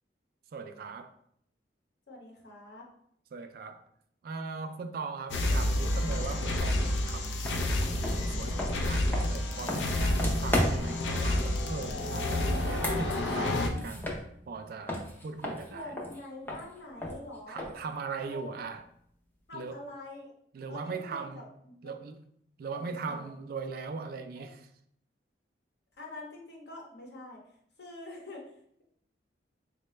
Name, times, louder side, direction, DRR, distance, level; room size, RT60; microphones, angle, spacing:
voice 1, 0.5-1.1 3.3-3.8 4.2-16.0 17.5-18.9 19.5-19.8 20.5-21.4 21.8-22.2 22.6-24.7, right 4 dB, 55° right, 0.3 m, -40 dB
voice 2, 2.1-2.9 15.7-17.7 18.3-18.7 19.5-20.3 20.7-21.9 22.7-23.3 24.4-24.5 26.0-27.4 27.8-28.5, left 2 dB, 65° left, 0.9 m, -45 dB
sound 1, 5.3-13.7, left 1 dB, 85° left, 0.5 m, -29 dB
sound 2, 7.4-7.6 8.0-11.0 12.5-14.6 14.9-17.9, left 1 dB, 10° left, 0.5 m, -35 dB
3.9 x 2.2 x 3.1 m
head